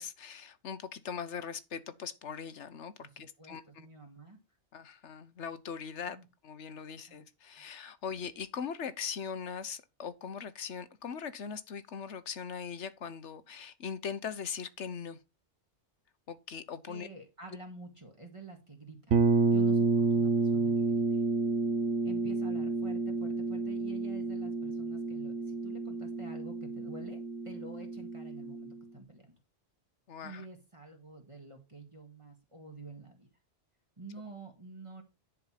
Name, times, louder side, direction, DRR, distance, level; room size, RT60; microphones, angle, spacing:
voice 1, 0.0-3.9 4.7-6.2 6.4-15.2 16.3-17.1 30.1-30.4, left 7 dB, 75° left, 1.3 m, -40 dB
voice 2, 3.0-4.4 6.1-6.3 7.1-7.2 7.6-7.7 16.9-21.2 22.0-29.3 30.2-33.3 34.0-35.0, right 3 dB, 25° right, 2.1 m, -49 dB
sound 1, 19.1-28.8, right 4 dB, 90° right, 1.3 m, -30 dB
10.5 x 4.7 x 5.8 m
omnidirectional pair, 1.2 m